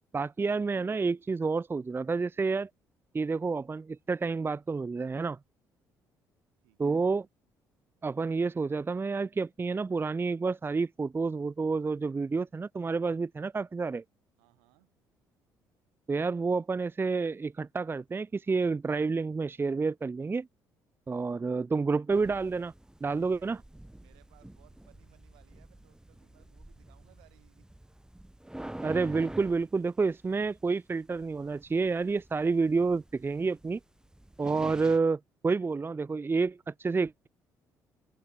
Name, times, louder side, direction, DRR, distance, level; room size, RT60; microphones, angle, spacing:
voice 1, 0.1-2.7 3.1-5.4 6.8-7.2 8.0-14.0 16.1-20.5 21.1-22.7 23.0-23.6 28.8-33.8 34.4-37.3, right 4 dB, 25° right, 0.6 m, -29 dB
voice 2, 6.6-7.0 14.4-14.9 23.0-23.7 24.0-27.7, right 33 dB, 85° right, 6.2 m, -64 dB
sound 1, 22.1-35.0, right 1 dB, 5° right, 2.2 m, -47 dB
hypercardioid pair, 55°, 9 cm